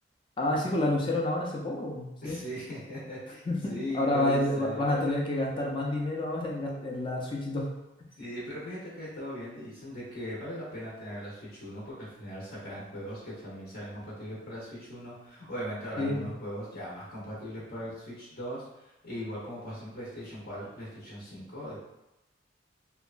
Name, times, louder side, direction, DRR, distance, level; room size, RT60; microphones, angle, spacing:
voice 1, 0.4-2.4 3.5-7.7 16.0-16.3, left 1 dB, 25° left, -2 dB, 0.5 m, -29 dB
voice 2, 2.2-5.1 8.2-21.8, equal, 55° left, -7 dB, 0.8 m, -39 dB
2.9 x 2.2 x 2.4 m, 0.95 s
head